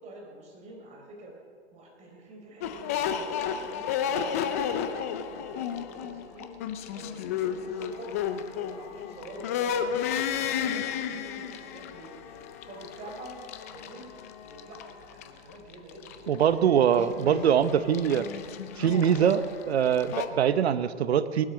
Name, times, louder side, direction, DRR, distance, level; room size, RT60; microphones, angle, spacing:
voice 1, 0.0-1.3 1.7-6.5 6.9-8.2 8.4-9.9 10.3-13.4 13.7-14.1 14.4-16.4 16.8-17.4 17.7-18.7 19.0-19.3, right 2 dB, 20° right, 0 dB, 4.1 m, -47 dB
sound 1, 2.6-20.3, left 8 dB, 15° left, 0.3 m, -33 dB
voice 2, 16.3-18.3 18.8-19.4 19.7-21.4, right 8 dB, 60° right, 13 dB, 1.0 m, -23 dB
19.0 x 12.0 x 6.4 m, 2.1 s
hypercardioid pair, 125°, 35 cm